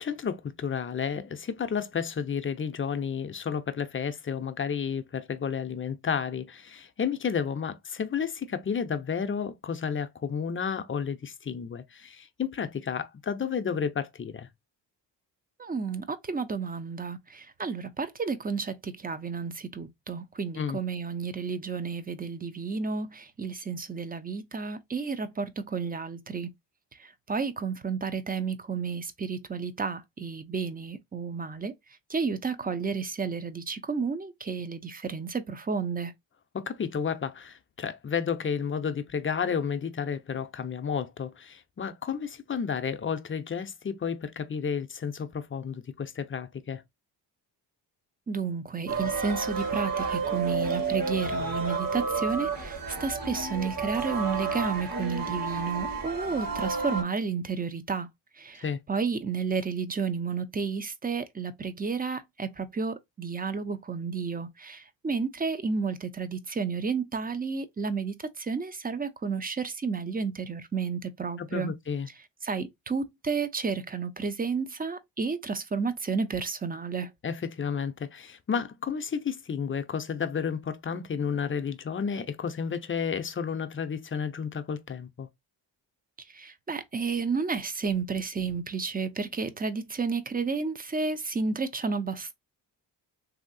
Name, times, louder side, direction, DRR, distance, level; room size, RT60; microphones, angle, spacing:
voice 1, 0.0-14.5 20.5-20.8 36.5-46.8 58.6-58.8 71.4-72.1 77.2-85.3, left 6 dB, 30° left, 0.6 m, -31 dB
voice 2, 15.6-26.5 27.0-31.7 32.1-36.1 48.3-58.1 58.4-71.7 72.4-77.1 86.3-92.3, right 5 dB, 20° right, 0.5 m, -31 dB
sound 1, 48.9-57.0, right 4 dB, 50° right, 1.3 m, -31 dB
3.1 x 2.7 x 2.5 m
cardioid pair, 70°, 44 cm